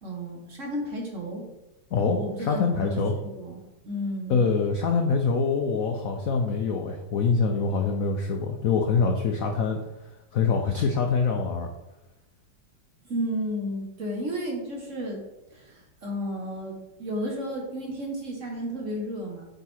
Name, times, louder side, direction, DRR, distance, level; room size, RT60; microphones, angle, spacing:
voice 1, 0.0-1.5 2.2-4.4 13.1-15.2 15.5-19.4, equal, 40° right, -1 dB, 1.5 m, -33 dB
voice 2, 1.9-3.1 4.3-9.8 10.3-11.7, left 5 dB, 80° left, 3 dB, 0.7 m, -24 dB
8.4 x 4.0 x 4.4 m, 0.99 s
omnidirectional pair, 2.3 m